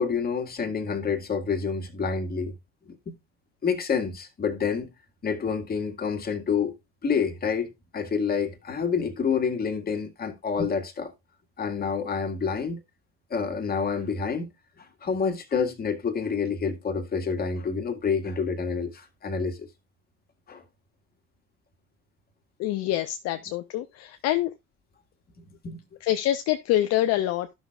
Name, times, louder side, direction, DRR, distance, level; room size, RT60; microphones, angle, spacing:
voice 1, 0.0-2.5 3.1-3.2 3.6-4.9 5.2-6.7 7.0-11.1 11.6-12.8 13.3-14.5 15.0-19.7 20.5-20.6 25.6-25.8, left 6 dB, 30° left, 2.0 m, -28 dB
voice 2, 22.6-24.5 26.0-27.5, left 13 dB, 55° left, 0.7 m, -26 dB
13.0 x 6.2 x 2.5 m
hypercardioid pair, 75°, 32 cm